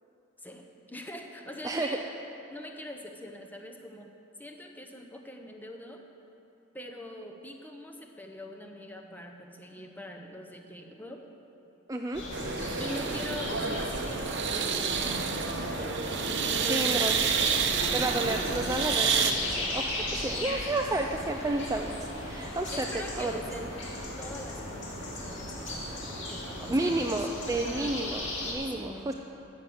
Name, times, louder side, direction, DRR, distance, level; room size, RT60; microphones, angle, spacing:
voice 1, 0.4-2.1 2.5-4.1 4.4-6.0 6.7-11.2 12.8-15.3 15.6-18.2 20.0-20.6 22.7-23.7 24.2-28.0 28.6-29.1, left 1 dB, 10° left, 3 dB, 0.8 m, -44 dB
voice 2, 1.6-2.0 11.9-12.2 16.7-17.1 17.9-23.3 26.7-29.1, right 2 dB, 15° right, 3 dB, 0.4 m, -31 dB
sound 1, 12.1-28.5, left 1 dB, 60° left, 2.5 m, -37 dB
sound 2, 12.3-19.3, right 6 dB, 55° right, 0.8 m, -29 dB
13.5 x 6.5 x 7.8 m, 2.9 s
head